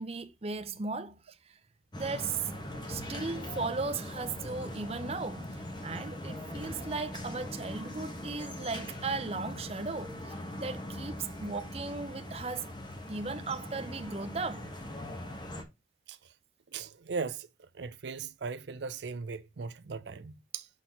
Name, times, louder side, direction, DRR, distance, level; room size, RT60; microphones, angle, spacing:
voice 1, 0.0-1.3 2.0-2.5 2.9-12.7 13.1-14.7, right 4 dB, 35° right, 0.7 m, -37 dB
sound 1, 1.9-15.6, left 1 dB, 25° left, 1.3 m, -41 dB
voice 2, 16.7-17.5 17.7-20.7, right 5 dB, 80° right, 0.5 m, -38 dB
6.0 x 4.4 x 5.3 m
head